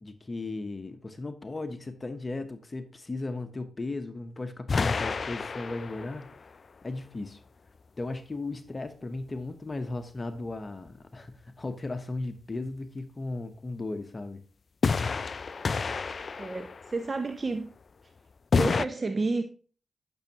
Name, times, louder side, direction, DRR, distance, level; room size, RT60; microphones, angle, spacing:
voice 1, 0.0-6.6 6.8-7.4 8.0-14.4, left 2 dB, 35° left, 0.9 m, -36 dB
sound 1, 4.7-6.4 14.8-17.1 18.5-18.8, left 4 dB, 55° left, 0.3 m, -29 dB
voice 2, 16.4-17.7 18.0-18.1 18.5-19.4, right 3 dB, 40° right, 0.6 m, -30 dB
10.5 x 6.2 x 2.9 m
cardioid pair, 55°, 0 cm